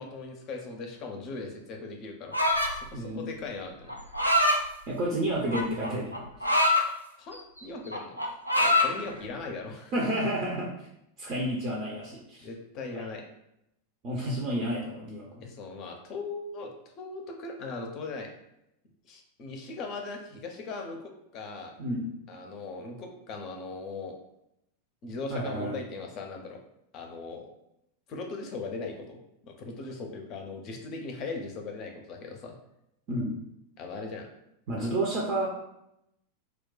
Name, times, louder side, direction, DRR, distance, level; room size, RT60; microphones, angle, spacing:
voice 1, 0.0-3.9 7.2-8.2 8.6-9.9 12.4-13.2 15.4-16.7 17.0-18.3 19.1-21.7 22.3-24.1 25.0-26.6 26.9-27.5 28.1-29.2 29.4-32.5 33.8-34.3 34.8-34.9, left 3 dB, 35° left, 2 dB, 0.6 m, -39 dB
sound 1, 2.3-2.9 3.9-4.6 5.5-6.8 7.3-7.6 7.9-8.9, left 1 dB, 90° left, 0.3 m, -24 dB
voice 2, 2.9-3.2 4.9-6.5 9.9-10.9 11.2-12.5 12.9-13.1 14.0-15.3 21.8-22.1 25.3-25.7 33.1-33.3 34.7-35.5, right 1 dB, 40° right, -3 dB, 0.6 m, -30 dB
2.3 x 2.2 x 3.8 m, 0.81 s
figure-of-eight pair, 90°, 0 cm